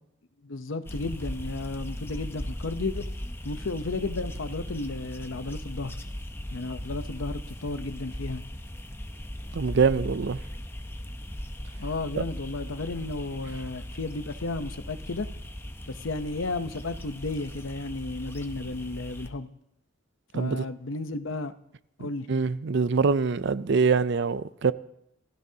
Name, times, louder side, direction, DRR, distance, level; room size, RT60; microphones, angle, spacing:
voice 1, 0.4-3.0 3.4-6.0 6.5-8.4 11.8-15.3 15.9-19.5 20.3-21.5 22.0-22.3, left 3 dB, 70° left, 0.8 m, -33 dB
sound 1, 0.9-19.3, equal, 10° left, 0.7 m, -38 dB
voice 2, 9.5-10.4 12.2-12.3 20.3-20.6 22.0-24.7, right 5 dB, 60° right, 0.5 m, -24 dB
26.5 x 16.5 x 2.8 m
head